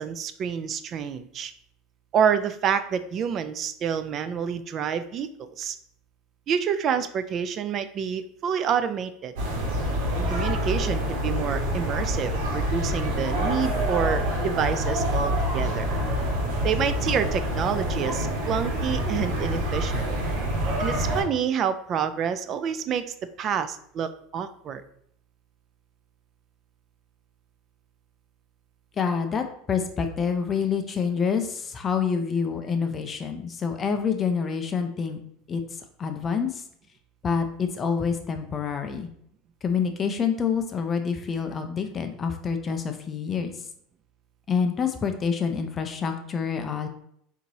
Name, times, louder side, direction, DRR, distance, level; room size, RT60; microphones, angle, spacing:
voice 1, 0.0-1.5 2.1-5.8 6.5-9.3 10.1-15.9 16.6-20.1 20.8-23.0 23.4-24.8, right 7 dB, 35° right, 11 dB, 0.3 m, -28 dB
sound 1, 9.4-21.2, equal, 80° right, 1.5 m, -26 dB
voice 2, 29.0-35.2 35.5-35.6 36.0-36.6 37.2-39.1 39.6-43.5 44.5-46.9, left 6 dB, 25° left, 6 dB, 0.5 m, -27 dB
4.6 x 2.8 x 3.9 m, 0.69 s
supercardioid pair, 145°, 0 cm